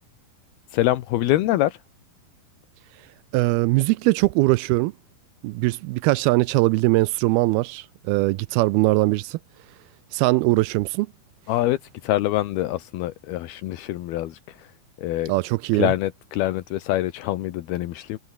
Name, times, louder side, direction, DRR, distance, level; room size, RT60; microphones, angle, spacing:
voice 1, 0.7-1.8 11.5-14.7 15.0-15.3 15.7-18.2, left 15 dB, 80° left, 3.0 m, -25 dB
voice 2, 3.3-4.9 5.4-9.4 10.1-11.1 15.3-15.9, right 21 dB, 85° right, 2.5 m, -21 dB
omnidirectional pair, 4.4 m